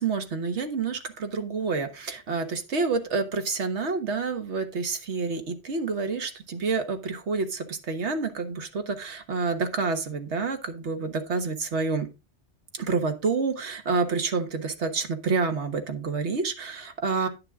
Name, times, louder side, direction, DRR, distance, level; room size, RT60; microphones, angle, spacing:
voice 1, 0.0-12.1 12.8-17.3, right 4 dB, 75° right, 6 dB, 1.6 m, -28 dB
10.0 x 6.8 x 3.6 m, 0.27 s
omnidirectional pair, 1.2 m